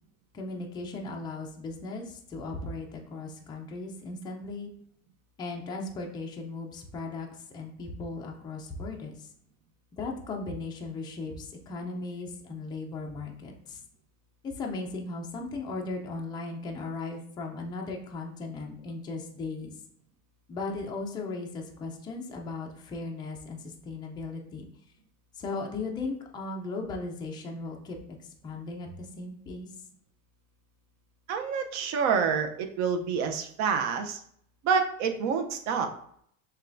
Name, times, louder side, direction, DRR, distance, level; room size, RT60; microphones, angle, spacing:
voice 1, 0.3-4.7 5.4-9.3 9.9-13.8 14.4-19.7 20.5-24.7 25.3-29.7, left 3 dB, 10° left, 0 dB, 0.4 m, -37 dB
voice 2, 31.3-34.2 34.6-35.9, right 6 dB, 45° right, 6 dB, 0.6 m, -27 dB
6.3 x 2.3 x 2.5 m, 0.67 s
supercardioid pair, 125°, 40 cm